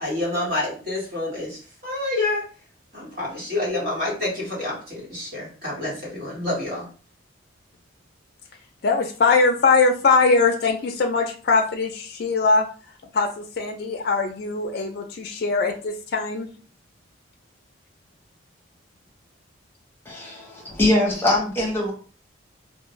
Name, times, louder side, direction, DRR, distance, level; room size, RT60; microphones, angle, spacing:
voice 1, 0.0-2.4 2.9-6.9, left 2 dB, 50° right, -5 dB, 1.4 m, -28 dB
voice 2, 8.8-12.7 13.1-16.5, left 4 dB, 55° left, 3 dB, 0.3 m, -21 dB
voice 3, 20.1-21.9, left 1 dB, 10° left, -2 dB, 0.7 m, -22 dB
2.4 x 2.0 x 3.0 m, 0.39 s
head